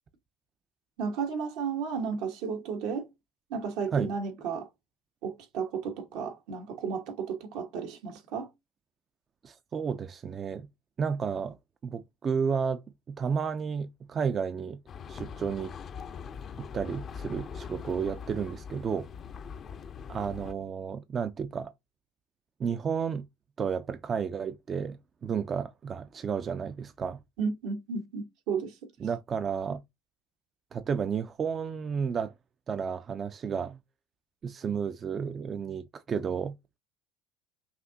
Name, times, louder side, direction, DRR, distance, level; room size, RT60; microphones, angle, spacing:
voice 1, 1.0-3.1 3.5-4.7 5.2-8.5 27.4-28.7, right 6 dB, 75° right, 1.4 m, -33 dB
voice 2, 9.4-10.7 11.0-11.6 11.8-14.8 15.1-15.7 16.6-19.1 20.1-21.7 22.6-23.3 23.6-27.2 29.0-29.8 30.7-32.3 32.7-33.8 34.4-36.8, right 6 dB, 35° right, 0.4 m, -32 dB
sound 1, 14.9-20.5, left 7 dB, 40° left, 0.5 m, -42 dB
5.8 x 2.7 x 2.7 m
supercardioid pair, 100°, 0 cm